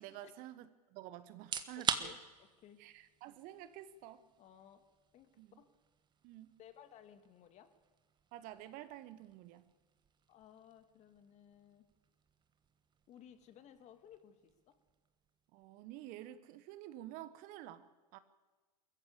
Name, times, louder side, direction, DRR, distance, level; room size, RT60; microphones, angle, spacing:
voice 1, 0.0-2.1 2.8-4.2 5.4-5.6 6.2-6.5 8.3-9.7 15.5-18.2, right 13 dB, 45° right, 14 dB, 1.3 m, -50 dB
sound 1, 1.3-16.2, right 7 dB, 20° right, 1.4 m, -47 dB
voice 2, 1.8-2.8 4.4-4.8 5.1-5.7 6.6-7.7 10.3-11.9 13.1-14.7, left 9 dB, 35° left, 9 dB, 2.1 m, -59 dB
22.5 x 14.5 x 8.5 m, 1.3 s
hypercardioid pair, 95°, 20 cm